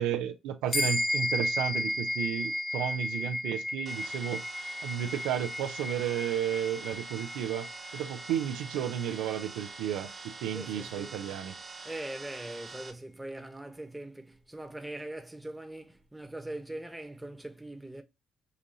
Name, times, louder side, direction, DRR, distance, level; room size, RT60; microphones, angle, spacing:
voice 1, 0.0-4.4 4.8-11.5, right 10 dB, 90° right, 0.4 m, -33 dB
sound 1, 0.7-10.4, left 1 dB, 30° left, 0.8 m, -34 dB
sound 2, 3.9-12.9, right 4 dB, 50° right, 0.9 m, -45 dB
voice 2, 10.5-11.1 11.8-18.0, right 1 dB, 10° right, 1.0 m, -41 dB
5.0 x 2.6 x 2.7 m
supercardioid pair, 55°, 0 cm